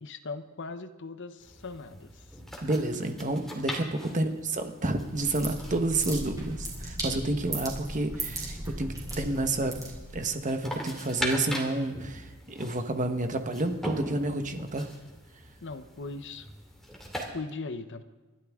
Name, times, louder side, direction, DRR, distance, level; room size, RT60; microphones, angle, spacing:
voice 1, 0.0-2.4 4.1-4.3 15.6-16.5 17.3-18.0, left 3 dB, 55° left, 10 dB, 0.8 m, -39 dB
sound 1, 1.4-17.3, equal, ahead, 2.5 m, -41 dB
voice 2, 2.6-9.8 10.1-14.9, right 2 dB, 35° right, 7 dB, 1.3 m, -30 dB
sound 2, 4.9-10.3, right 1 dB, 15° right, 4.2 m, -37 dB
27.5 x 12.0 x 3.7 m, 1.3 s
head